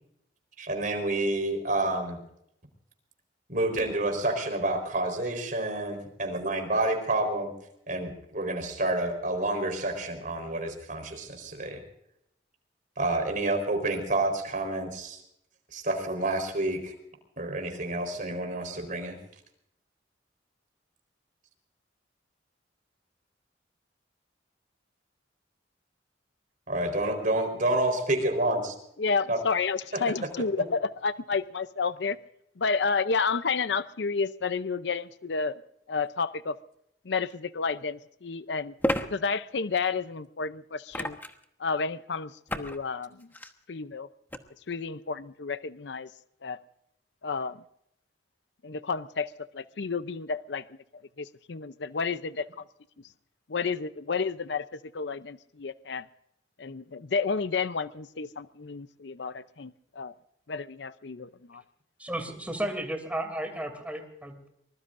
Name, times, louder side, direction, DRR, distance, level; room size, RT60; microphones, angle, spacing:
voice 1, 0.6-2.2 3.5-7.5 7.9-11.8 13.0-15.2 15.7-16.9 17.4-19.2 26.7-28.7 29.3-29.4, right 2 dB, 45° right, 4.2 m, -29 dB
voice 2, 29.0-32.2 32.6-35.6 35.9-36.6 37.1-38.7 39.1-41.2 41.6-43.3 43.7-44.1 44.7-46.1 46.4-46.6 47.2-47.6 48.6-50.6 51.2-52.6 53.5-54.6 54.9-56.1 56.6-60.1 60.5-61.6, left 5 dB, 65° left, 0.6 m, -31 dB
sound 1, 37.3-37.4 38.8-39.1 40.9-41.4 42.5-42.8 43.2-43.5 44.3-44.4, left 1 dB, 10° left, 1.2 m, -30 dB
voice 3, 62.0-64.5, right 1 dB, 10° right, 2.8 m, -33 dB
24.0 x 21.0 x 2.6 m
head